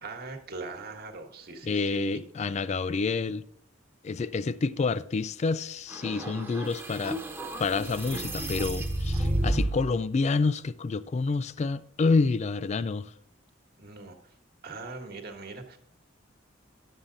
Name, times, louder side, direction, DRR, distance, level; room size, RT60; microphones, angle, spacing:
voice 1, 0.0-2.2 9.2-9.4 13.8-14.2 14.6-15.8, right 3 dB, 50° right, 1.4 m, -41 dB
voice 2, 1.6-3.4 4.0-7.2 7.6-13.1, left 4 dB, 35° left, 0.3 m, -28 dB
sound 1, 5.9-9.9, right 1 dB, 10° right, 1.1 m, -31 dB
11.5 x 7.3 x 3.8 m
head